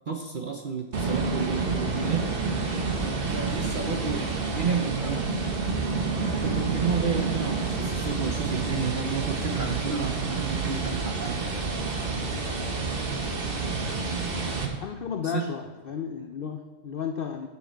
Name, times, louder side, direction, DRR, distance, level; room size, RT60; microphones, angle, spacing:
voice 1, 0.1-2.3 3.3-5.3 6.4-11.4 15.2-15.4, right 5 dB, 55° right, 3 dB, 0.5 m, -31 dB
sound 1, 0.9-14.7, right 4 dB, 40° right, 1.1 m, -29 dB
voice 2, 14.8-17.5, left 7 dB, 80° left, 6 dB, 0.5 m, -33 dB
9.4 x 7.0 x 4.5 m, 1.2 s
omnidirectional pair, 1.6 m